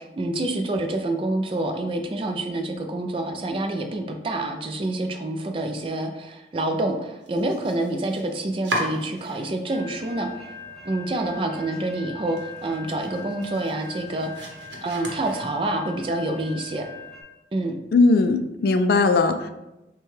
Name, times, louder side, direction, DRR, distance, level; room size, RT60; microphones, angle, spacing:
voice 1, 0.0-10.5 10.8-14.5 14.8-16.9 17.5-17.8, right 2 dB, 30° right, 4 dB, 0.4 m, -27 dB
Domestic sounds home sounds, 7.2-9.8 10.1-10.8 11.2-11.3 11.7-11.8 12.2-15.9, right 1 dB, 85° right, 0.8 m, -36 dB
sound 1, 9.7-17.2, left 4 dB, 5° left, 1.0 m, -42 dB
voice 2, 17.9-19.5, left 3 dB, 60° left, 8 dB, 0.3 m, -19 dB
6.1 x 2.3 x 3.2 m, 0.96 s
head